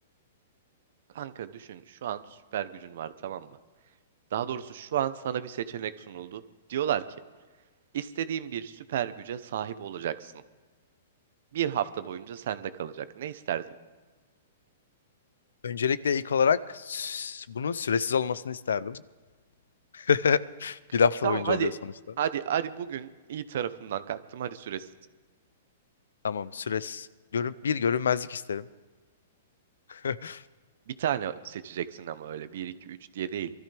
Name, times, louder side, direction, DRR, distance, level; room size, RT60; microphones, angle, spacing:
voice 1, 1.1-2.2 2.5-3.6 4.3-6.4 6.7-7.0 7.9-10.3 11.5-13.6 21.2-21.7 22.2-24.9 31.0-33.5, right 10 dB, 65° right, 14 dB, 0.8 m, -32 dB
voice 2, 15.6-19.0 19.9-21.7 26.2-27.1 27.3-28.7 29.9-30.4, left 6 dB, 85° left, 18 dB, 0.5 m, -27 dB
23.5 x 13.5 x 3.4 m, 1.3 s
hypercardioid pair, 130°, 0 cm